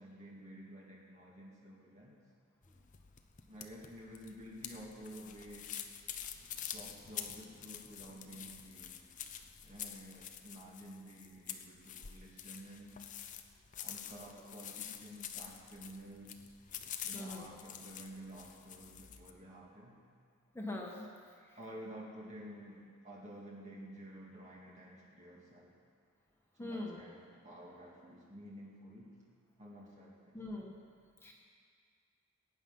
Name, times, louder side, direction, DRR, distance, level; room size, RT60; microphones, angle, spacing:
voice 1, 0.0-2.2 3.4-5.7 6.7-9.0 9.6-13.0 13.8-16.5 17.0-20.0 21.6-25.8 26.5-29.1 29.6-30.4, equal, 35° right, -4 dB, 2.1 m, -51 dB
sound 1, 2.6-19.3, left 9 dB, 35° left, 0.7 m, -47 dB
voice 2, 17.1-17.5 20.5-21.1 21.4-21.6 26.6-27.0 30.3-30.8 31.2-31.3, left 1 dB, 10° left, -1 dB, 1.5 m, -42 dB
21.5 x 9.3 x 5.6 m, 2.1 s
head